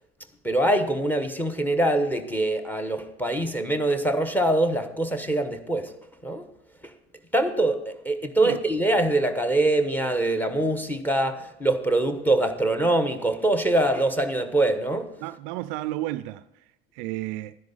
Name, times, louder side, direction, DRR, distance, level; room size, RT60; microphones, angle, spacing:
voice 1, 0.4-5.9 6.2-6.5 6.8-6.9 7.3-15.2, right 1 dB, 5° left, 1.2 m, -24 dB
voice 2, 15.2-16.6 16.9-17.6, right 16 dB, 55° right, 0.5 m, -32 dB
12.0 x 10.5 x 4.0 m
figure-of-eight pair, 70°, 33 cm